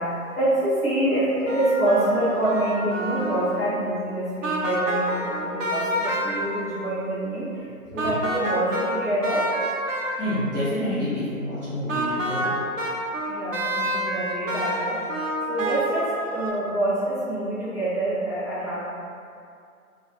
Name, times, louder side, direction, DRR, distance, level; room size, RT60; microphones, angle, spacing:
voice 1, 0.0-9.5 13.3-15.0 15.5-18.8, right 1 dB, ahead, -18 dB, 0.6 m, -26 dB
sound 1, 1.1-3.7 4.4-6.7 8.0-10.4 11.9-16.5, right 1 dB, 60° right, 0.5 m, -28 dB
voice 2, 10.2-12.6, left 1 dB, 40° right, -13 dB, 0.8 m, -28 dB
2.4 x 2.3 x 2.6 m, 2.4 s
figure-of-eight pair, 150°, 44 cm